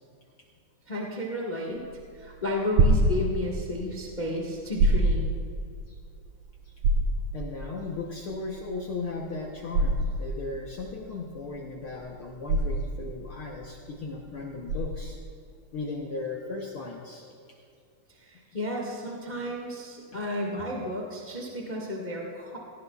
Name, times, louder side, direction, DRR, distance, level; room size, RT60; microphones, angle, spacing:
voice 1, 0.9-1.8 2.1-5.3 18.1-22.6, left 1 dB, 55° left, -1 dB, 0.5 m, -33 dB
sound 1, 1.7-15.3, right 2 dB, 75° right, 2.6 m, -26 dB
voice 2, 7.3-15.2 15.7-17.3 19.3-19.4 20.1-20.2, left 3 dB, 75° left, -1 dB, 1.2 m, -36 dB
17.5 x 16.5 x 2.4 m, 2.5 s
omnidirectional pair, 3.7 m